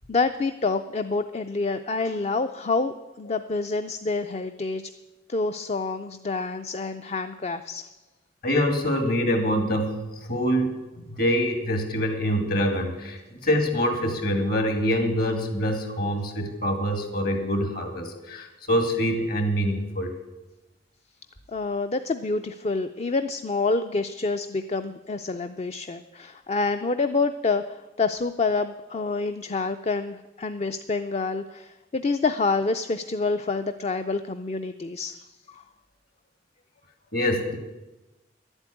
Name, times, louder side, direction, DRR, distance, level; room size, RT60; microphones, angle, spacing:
voice 1, 0.1-4.9 5.3-7.9 21.5-35.6, left 3 dB, 35° left, 9 dB, 0.4 m, -27 dB
voice 2, 8.4-20.1 37.1-37.6, equal, 55° left, 6 dB, 2.1 m, -25 dB
11.5 x 8.1 x 9.8 m, 1.1 s
head